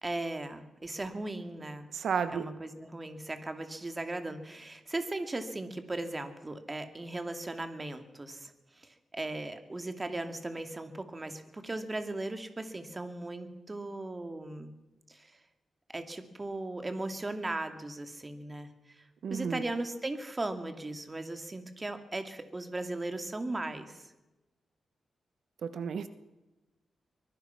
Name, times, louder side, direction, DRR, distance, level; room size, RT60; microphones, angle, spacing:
voice 1, 0.0-1.9 2.3-8.5 8.8-14.7 15.1-15.3 15.9-18.7 19.0-24.0, right 2 dB, 25° right, 7 dB, 2.3 m, -37 dB
voice 2, 1.9-2.5 19.2-19.6 25.6-26.1, right 6 dB, 75° right, 11 dB, 1.2 m, -32 dB
24.0 x 22.0 x 5.8 m, 1.0 s
wide cardioid pair, 110°, 0 cm